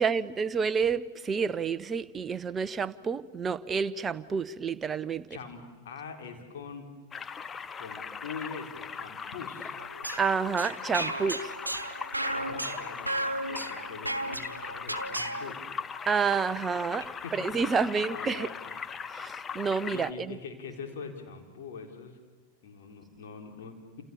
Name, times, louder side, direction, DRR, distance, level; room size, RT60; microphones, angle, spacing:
voice 1, 0.0-5.3 10.2-11.5 16.1-17.0 17.3-18.5 19.1-20.4, right 5 dB, 20° right, 0.9 m, -29 dB
voice 2, 5.3-6.9 7.8-9.8 12.3-15.6 17.0-17.3 17.6-19.1 19.9-22.2 22.6-24.0, left 5 dB, 55° left, 4.2 m, -43 dB
sound 1, 7.1-20.1, left 6 dB, 20° left, 0.8 m, -40 dB
sound 2, 9.8-15.5, right 1 dB, 85° right, 1.1 m, -34 dB
28.5 x 28.5 x 7.1 m
figure-of-eight pair, 90°, 0 cm